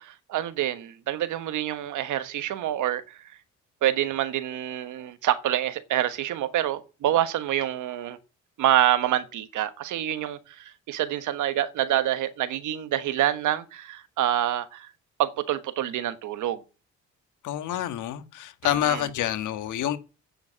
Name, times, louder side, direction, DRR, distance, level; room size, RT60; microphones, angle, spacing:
voice 1, 0.0-3.2 3.8-8.2 8.6-14.9 15.2-16.6 18.6-19.0, right 12 dB, 80° right, 1.3 m, -27 dB
voice 2, 17.4-20.0, left 11 dB, 80° left, 1.5 m, -27 dB
9.4 x 7.3 x 8.6 m
cardioid pair, 90°, 30 cm